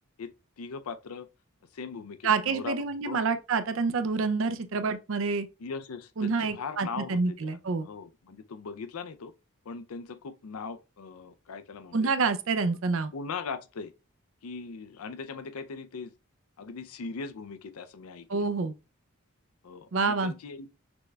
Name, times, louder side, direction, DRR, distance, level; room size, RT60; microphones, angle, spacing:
voice 1, 0.2-1.3 1.7-3.2 5.6-9.3 9.7-12.1 12.6-12.8 13.1-13.9 14.4-16.1 16.6-18.5 19.6-20.7, left 5 dB, 90° left, 0.5 m, -40 dB
voice 2, 2.2-5.5 6.2-7.9 11.9-13.1 18.3-18.7 19.9-20.3, right 4 dB, 65° right, 0.5 m, -27 dB
6.0 x 3.3 x 2.2 m
head